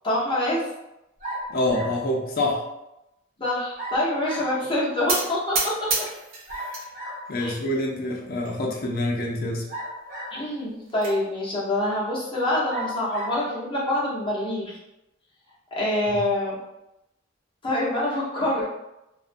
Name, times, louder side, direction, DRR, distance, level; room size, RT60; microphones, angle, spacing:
voice 1, 0.0-0.7 3.4-5.7 7.4-7.6 10.3-14.8 15.8-16.6 17.6-18.7, left 1 dB, 25° left, -7 dB, 0.8 m, -25 dB
sound 1, 1.2-2.1 3.8-4.6 6.5-7.3 9.7-10.5 11.3-11.4 12.7-13.4, right 1 dB, 45° right, 1.0 m, -35 dB
voice 2, 1.5-2.6 6.5-6.8 7.3-9.6 16.1-16.2, left 1 dB, 50° left, 0 dB, 0.5 m, -26 dB
sound 2, 5.1-6.9 7.3-7.9 8.4-8.6 8.8-8.9 9.3-9.4 10.5-11.2, right 3 dB, 80° right, 0.6 m, -29 dB
2.4 x 2.1 x 2.5 m, 0.90 s
head